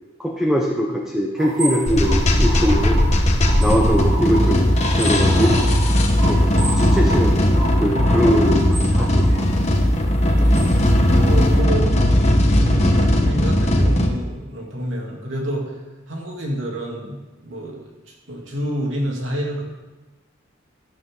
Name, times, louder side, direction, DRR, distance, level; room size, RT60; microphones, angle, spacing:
voice 1, 0.2-3.0 3.6-4.7 5.0-5.6 6.3-9.3, equal, ahead, -1 dB, 1.1 m, -22 dB
sound 1, 1.4-11.6, right 2 dB, 45° right, 4.0 m, -32 dB
sound 2, 1.9-14.1, left 1 dB, 35° left, 1.3 m, -17 dB
voice 2, 10.4-11.9 12.5-15.8 16.1-17.8 18.1-19.6, right 1 dB, 80° right, -2 dB, 3.1 m, -28 dB
15.5 x 10.5 x 4.0 m, 1.2 s
head